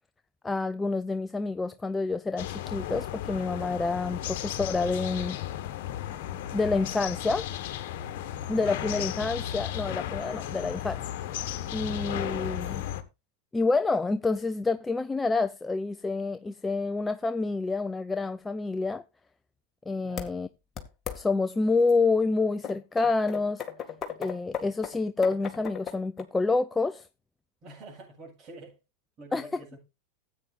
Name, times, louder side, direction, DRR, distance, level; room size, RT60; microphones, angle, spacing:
voice 1, 0.4-5.4 6.5-7.5 8.5-11.0 11.4-12.8 13.5-19.0 19.9-20.5 21.1-23.6 24.2-27.1 29.3-29.5, left 3 dB, 10° left, 0.5 m, -28 dB
sound 1, 2.4-13.0, left 12 dB, 60° left, 1.4 m, -35 dB
voice 2, 20.0-20.4 27.6-28.8 29.2-29.8, right 3 dB, 40° right, 7.3 m, -47 dB
sound 2, 20.2-20.3 20.8-21.2 21.9-22.0 22.6-26.2, left 8 dB, 25° left, 2.0 m, -36 dB
15.0 x 8.8 x 2.5 m
hypercardioid pair, 110°, 0 cm